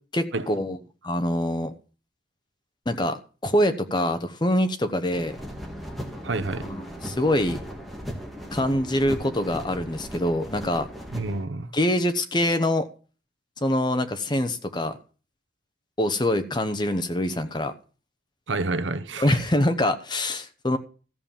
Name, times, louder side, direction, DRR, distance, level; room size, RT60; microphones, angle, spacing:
voice 1, 0.1-0.8 1.0-1.7 2.9-5.4 6.7-7.6 8.5-10.9 11.7-12.9 13.6-15.0 16.0-17.7 19.2-20.8, left 1 dB, 25° left, 0.9 m, -24 dB
sound 1, 5.1-11.4, equal, ahead, 1.9 m, -37 dB
voice 2, 6.2-6.7 11.1-11.7 18.5-19.4, right 3 dB, 75° right, 0.9 m, -29 dB
14.0 x 5.3 x 7.3 m
head